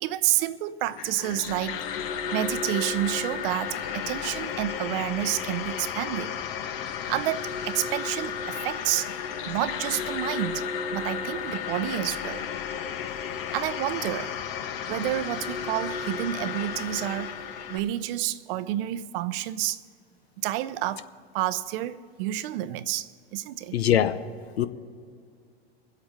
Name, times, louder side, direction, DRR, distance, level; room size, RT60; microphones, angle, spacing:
voice 1, 0.0-1.9 2.3-6.4 7.1-9.1 9.5-10.7 10.9-12.4 13.5-14.3 14.9-17.3 17.7-19.8 20.4-21.1 21.3-23.8, right 14 dB, 65° right, 0.7 m, -29 dB
sound 1, 0.8-17.8, left 7 dB, 65° left, 1.1 m, -33 dB
voice 2, 23.7-24.2 24.6-24.7, left 10 dB, 85° left, 0.7 m, -22 dB
22.5 x 8.3 x 4.0 m
hypercardioid pair, 90°, 31 cm